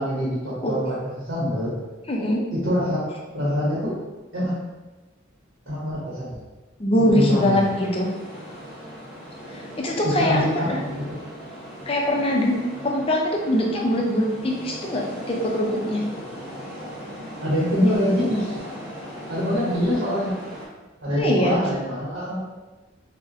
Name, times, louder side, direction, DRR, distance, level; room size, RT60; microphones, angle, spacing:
voice 1, 0.0-1.7 2.5-3.0 3.3-4.0 4.3-4.5 5.7-6.4 7.1-7.7 10.0-11.2 17.4-18.6 19.3-20.4 21.0-22.4, equal, 70° right, -8 dB, 0.9 m, -25 dB
voice 2, 2.1-2.4 6.8-8.1 9.5-10.4 10.7-10.8 11.9-12.6 12.8-16.0 21.2-21.6, left 1 dB, 30° left, -1 dB, 0.4 m, -22 dB
sound 1, 7.1-20.7, equal, 5° right, 0.9 m, -38 dB
3.8 x 2.1 x 2.5 m, 1.2 s
head